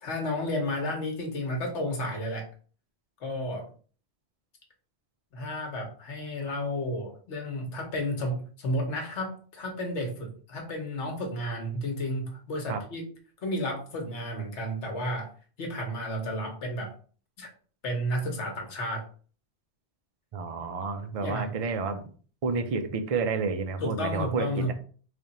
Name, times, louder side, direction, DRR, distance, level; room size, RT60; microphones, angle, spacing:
voice 1, 0.0-2.5 3.2-3.7 5.3-13.1 13.4-15.3 15.6-16.9 17.4-17.5 17.8-19.1 21.2-21.5 23.8-24.7, left 1 dB, 80° left, 2 dB, 1.3 m, -32 dB
voice 2, 20.3-22.1 22.4-24.7, right 4 dB, 50° right, 7 dB, 0.4 m, -30 dB
3.4 x 2.4 x 4.1 m, 0.42 s
omnidirectional pair, 1.2 m